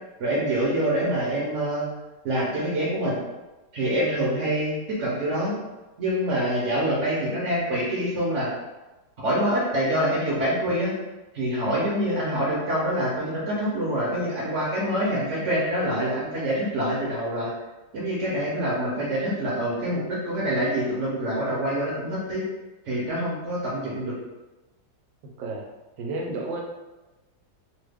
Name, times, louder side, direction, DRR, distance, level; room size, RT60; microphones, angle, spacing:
voice 1, 0.2-1.9 2.2-3.2 3.7-5.6 6.0-8.5 9.2-10.9 11.3-17.5 17.9-22.4 22.8-24.2, right 1 dB, 55° right, -6 dB, 0.9 m, -26 dB
voice 2, 25.2-25.7 26.0-26.6, right 2 dB, 90° right, 1 dB, 1.3 m, -32 dB
3.1 x 2.2 x 3.4 m, 1.1 s
omnidirectional pair, 1.9 m